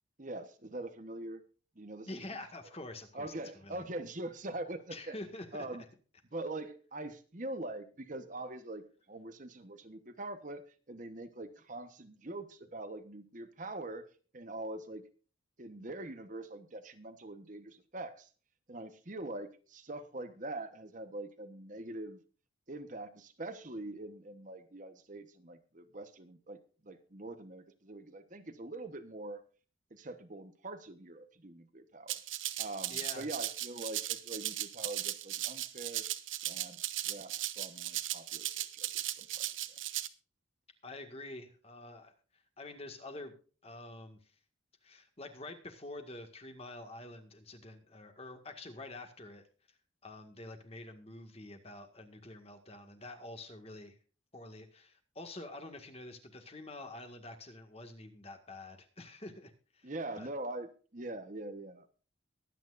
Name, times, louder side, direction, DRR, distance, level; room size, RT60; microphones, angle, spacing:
voice 1, 0.2-1.4 1.8-2.1 3.1-5.1 5.5-5.8 6.3-14.0 14.3-15.0 15.6-18.3 18.7-22.2 22.7-29.4 29.9-32.2 32.6-36.1 36.5-39.5 59.8-61.9, right 2 dB, 40° right, 9 dB, 1.1 m, -43 dB
voice 2, 2.1-3.8 4.9-5.8 32.9-33.3 40.8-43.3 43.6-44.3 44.8-49.4 50.0-54.0 54.3-59.9 60.2-60.3, left 2 dB, 30° left, 6 dB, 1.8 m, -47 dB
Rattle (instrument), 32.1-40.1, right 14 dB, 75° right, 0.9 m, -37 dB
22.5 x 9.1 x 2.5 m, 0.38 s
head